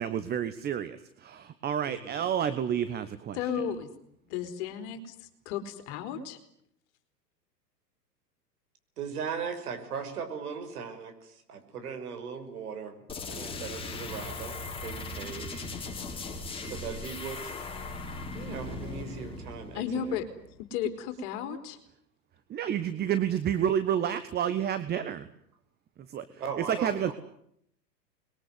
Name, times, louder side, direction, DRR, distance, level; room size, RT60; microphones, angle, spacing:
voice 1, 0.0-3.4 22.5-25.3 26.1-26.2 26.7-27.1, right 9 dB, 20° right, 13 dB, 1.2 m, -29 dB
voice 2, 3.3-3.9 4.3-5.1 5.5-6.4 19.7-20.3 20.7-21.8, left 8 dB, 45° left, 8 dB, 4.0 m, -33 dB
voice 3, 9.0-13.0 13.3-14.6 14.8-15.7 16.6-17.5 18.3-20.2 26.3-27.1, right 6 dB, 60° right, 7 dB, 6.1 m, -38 dB
sound 1, 13.1-20.7, left 3 dB, 10° left, 5.3 m, -39 dB
27.0 x 22.0 x 9.6 m, 0.72 s
figure-of-eight pair, 105°, 50 cm